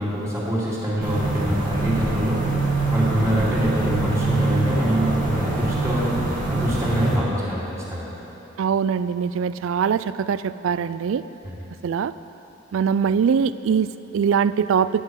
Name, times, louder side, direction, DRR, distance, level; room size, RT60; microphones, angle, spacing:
voice 1, 0.0-2.4 2.9-7.6 7.9-8.1 11.4-11.6, equal, 15° right, -7 dB, 2.3 m, -24 dB
sound 1, 1.0-7.2, right 2 dB, 40° right, 1.9 m, -24 dB
voice 2, 8.6-11.2 11.8-12.1 12.7-15.0, right 7 dB, 70° right, 15 dB, 0.3 m, -22 dB
11.0 x 6.2 x 7.9 m, 2.9 s
head